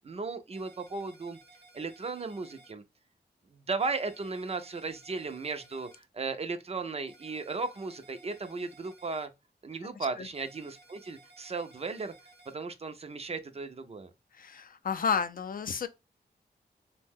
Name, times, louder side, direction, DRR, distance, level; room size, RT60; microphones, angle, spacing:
voice 1, 0.0-1.4 1.7-2.8 3.5-9.3 9.6-12.1 12.5-14.1, right 4 dB, 35° right, 0.4 m, -36 dB
sound 1, 0.5-2.7 3.8-6.0 7.1-9.3 10.3-12.5, right 2 dB, 90° right, 0.8 m, -57 dB
voice 2, 14.4-15.9, left 6 dB, 55° left, 0.4 m, -31 dB
2.6 x 2.1 x 3.4 m
wide cardioid pair, 105°, 17 cm